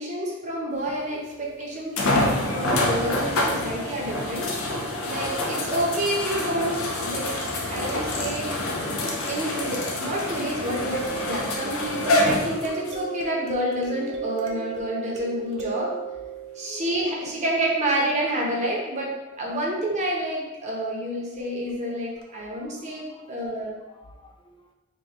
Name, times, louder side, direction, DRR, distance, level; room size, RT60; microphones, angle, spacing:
voice 1, 0.0-4.5 5.1-7.4 7.7-8.5 9.3-15.9 16.5-23.8, right 1 dB, 35° right, -3 dB, 0.8 m, -28 dB
sound 1, 0.9-1.0 2.0-13.0 13.7-13.8 17.3-17.4, left 1 dB, 80° left, 0.7 m, -27 dB
voice 2, 1.1-1.6 4.9-5.0 8.7-9.3 16.6-16.9 21.4-21.9 22.3-23.3 23.9-24.7, left 2 dB, 25° left, 4 dB, 0.3 m, -51 dB
sound 2, 10.5-17.4 21.7-21.8 22.2-22.3, right 7 dB, 65° right, 0.5 m, -36 dB
4.7 x 2.4 x 3.0 m, 1.1 s
head